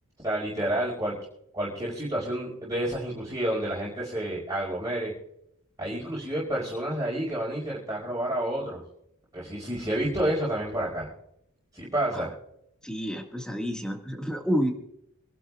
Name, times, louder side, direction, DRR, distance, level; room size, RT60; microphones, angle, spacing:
voice 1, 0.2-1.1 1.5-5.1 5.8-8.8 9.3-11.1 11.7-12.3, right 1 dB, 15° right, -6 dB, 5.1 m, -29 dB
voice 2, 12.8-14.7, equal, 5° left, 2 dB, 1.8 m, -29 dB
26.5 x 12.0 x 2.4 m, 0.76 s
head